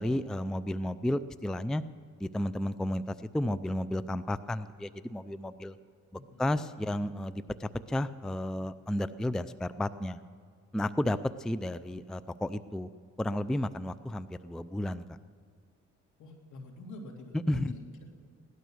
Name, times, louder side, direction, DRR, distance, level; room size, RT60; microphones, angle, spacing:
voice 1, 0.0-1.8 2.2-5.8 6.4-10.2 10.7-12.9 13.2-15.2 17.5-17.7, left 1 dB, ahead, 14 dB, 0.4 m, -32 dB
voice 2, 6.1-6.6 16.2-18.0, left 2 dB, 75° left, 1 dB, 3.1 m, -47 dB
17.5 x 12.5 x 6.4 m, 2.1 s
cardioid pair, 90°, 30 cm